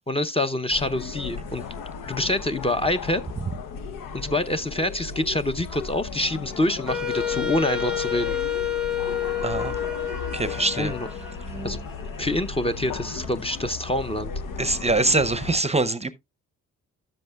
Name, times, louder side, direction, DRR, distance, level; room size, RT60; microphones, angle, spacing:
voice 1, 0.1-1.6 2.1-3.2 4.1-8.4 10.8-11.1 11.6-11.8 12.2-14.3, left 1 dB, 20° left, 0.7 m, -26 dB
sound 1, 0.7-15.6, left 5 dB, 85° left, 0.9 m, -36 dB
Wind instrument woodwind instrument, 6.9-11.8, left 8 dB, ahead, 1.0 m, -29 dB
sound 2, 8.1-13.2, left 4 dB, 40° left, 3.8 m, -50 dB
voice 2, 9.4-9.8 10.3-10.9 14.6-16.1, right 2 dB, 20° right, 0.7 m, -23 dB
11.5 x 7.5 x 2.3 m
cardioid pair, 65°, 32 cm